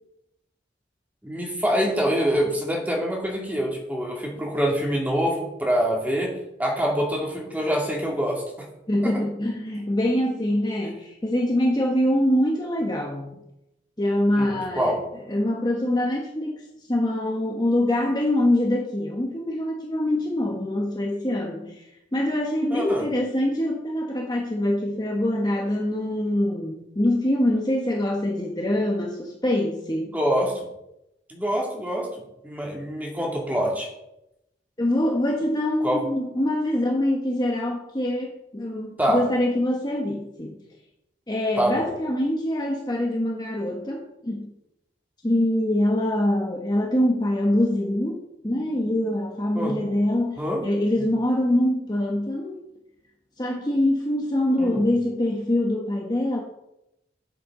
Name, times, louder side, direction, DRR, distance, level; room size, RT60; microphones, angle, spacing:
voice 1, 1.2-6.3 6.6-8.4 9.0-9.1 14.4-15.0 22.7-23.0 30.1-30.5 31.3-32.1 32.4-33.9 35.8-36.0 39.0-39.2 41.6-41.9 49.5-49.7 50.4-50.6 54.6-54.9, equal, 10° right, -1 dB, 2.2 m, -25 dB
voice 2, 8.9-13.4 14.0-15.0 15.3-30.1 34.8-40.6 41.3-44.5 45.2-48.2 48.4-52.6 53.4-56.4, left 1 dB, 25° left, 1 dB, 1.1 m, -24 dB
13.0 x 7.7 x 3.8 m, 0.87 s
head